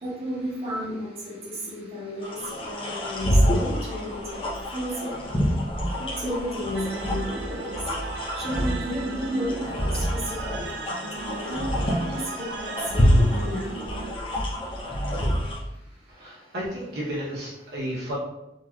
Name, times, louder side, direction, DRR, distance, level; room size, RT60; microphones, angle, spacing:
voice 1, 0.0-2.4 2.6-5.5 6.2-7.7 8.3-10.6 11.2-13.8, equal, 35° right, -7 dB, 1.2 m, -33 dB
sound 1, 2.2-15.6, equal, 30° left, 0.6 m, -27 dB
sound 2, 6.7-14.1, right 4 dB, 85° right, 0.4 m, -37 dB
voice 2, 16.1-18.1, equal, 70° right, -7 dB, 0.8 m, -33 dB
3.9 x 2.8 x 2.2 m, 0.93 s
head